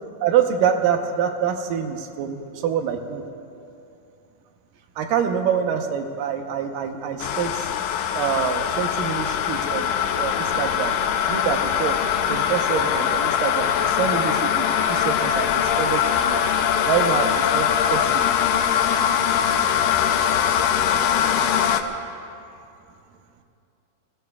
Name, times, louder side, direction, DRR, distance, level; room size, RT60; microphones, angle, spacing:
voice 1, 0.2-3.2 5.0-7.7 8.1-11.0 11.3-12.0 12.3-16.3 16.8-18.2, right 8 dB, 85° right, 5 dB, 2.6 m, -26 dB
sound 1, 7.2-21.8, left 9 dB, 85° left, 1.5 m, -22 dB
28.5 x 19.5 x 2.4 m, 2.6 s
omnidirectional pair, 3.8 m